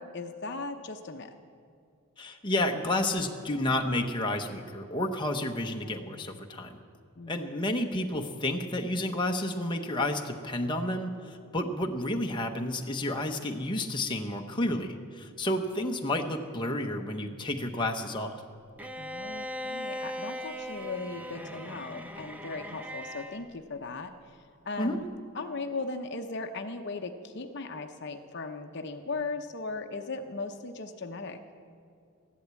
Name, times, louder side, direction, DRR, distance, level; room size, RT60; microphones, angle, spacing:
voice 1, 0.0-1.4 7.2-7.6 19.0-25.1 25.3-31.4, left 3 dB, 55° left, 6 dB, 0.7 m, -38 dB
voice 2, 2.2-6.8 7.3-18.4 24.8-25.0, left 1 dB, 20° left, 2 dB, 0.9 m, -31 dB
Bowed string instrument, 18.8-23.5, equal, 10° right, 0.7 m, -39 dB
14.5 x 11.5 x 8.3 m, 2.3 s
head